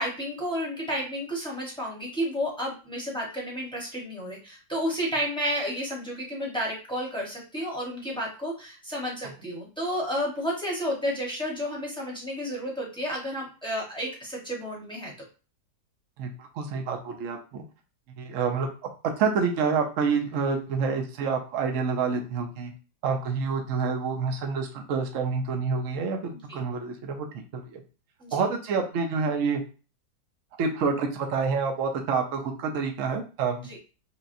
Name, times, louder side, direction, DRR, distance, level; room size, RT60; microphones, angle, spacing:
voice 1, 0.0-15.1 28.2-28.4 33.6-33.8, equal, 5° left, -3 dB, 0.9 m, -31 dB
voice 2, 16.2-17.6 18.2-22.7 23.0-27.8 28.3-29.6 30.6-33.6, right 5 dB, 60° right, 3 dB, 0.9 m, -28 dB
5.6 x 2.3 x 2.6 m, 0.34 s
omnidirectional pair, 1.8 m